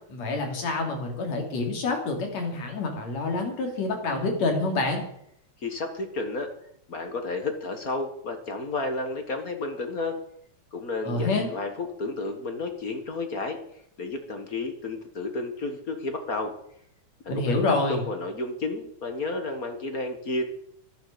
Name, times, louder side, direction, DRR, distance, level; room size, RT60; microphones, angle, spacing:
voice 1, 0.1-5.0 11.0-11.5 17.3-18.0, left 3 dB, 60° left, 3 dB, 4.1 m, -27 dB
voice 2, 5.6-6.5 6.9-10.2 10.7-13.6 14.0-16.5 17.3-20.4, left 2 dB, 40° left, 6 dB, 1.4 m, -31 dB
12.0 x 12.0 x 6.8 m, 0.70 s
omnidirectional pair, 3.4 m